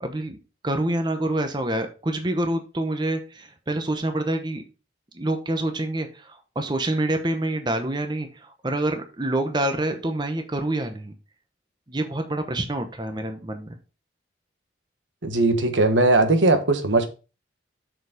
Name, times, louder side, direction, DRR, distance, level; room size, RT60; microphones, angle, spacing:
voice 1, 0.0-0.4 0.6-4.6 5.1-11.1 11.9-13.8, right 1 dB, 25° right, 0.9 m, -27 dB
voice 2, 15.2-17.1, right 2 dB, 85° right, 1.3 m, -19 dB
6.2 x 5.0 x 5.0 m
head